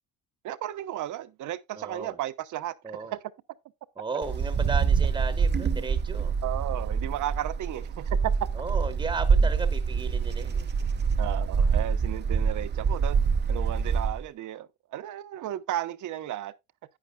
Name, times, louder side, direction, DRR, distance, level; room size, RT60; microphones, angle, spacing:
voice 1, 0.4-3.2 6.4-8.3 9.4-9.5 11.2-16.5, right 13 dB, 55° right, 0.9 m, -34 dB
voice 2, 1.7-2.2 2.8-3.1 4.0-6.3 8.6-10.7, right 4 dB, 15° right, 1.1 m, -35 dB
Wind, 4.2-14.2, right 5 dB, 30° right, 0.8 m, -26 dB
11.0 x 9.3 x 2.2 m
cardioid pair, 135°, 36 cm